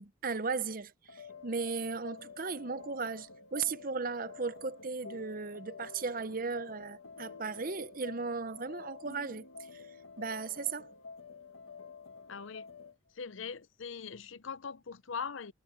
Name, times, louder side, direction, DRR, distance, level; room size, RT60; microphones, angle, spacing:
voice 1, 0.0-9.5 9.7-9.8 10.2-10.9, right 4 dB, 40° right, 0.7 m, -36 dB
sound 1, 1.1-13.0, left 5 dB, 85° left, 1.7 m, -50 dB
voice 2, 12.3-12.7 13.2-15.5, left 6 dB, 70° left, 0.6 m, -41 dB
head